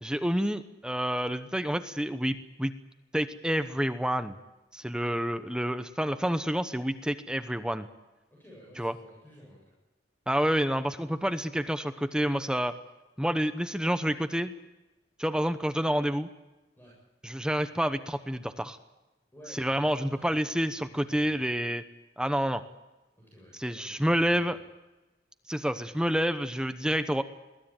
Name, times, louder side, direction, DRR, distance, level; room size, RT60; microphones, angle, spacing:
voice 1, 0.0-2.7 3.1-4.3 4.7-7.9 8.8-8.9 10.3-12.7 13.2-14.5 15.2-16.3 17.2-18.8 19.6-21.8 22.2-22.6 23.6-24.6 25.5-27.2, equal, 5° right, 10 dB, 0.9 m, -28 dB
voice 2, 8.3-9.7 16.8-17.0 19.3-21.4 23.2-24.7, equal, 10° left, -4 dB, 7.6 m, -53 dB
23.0 x 17.0 x 9.0 m, 1.0 s
head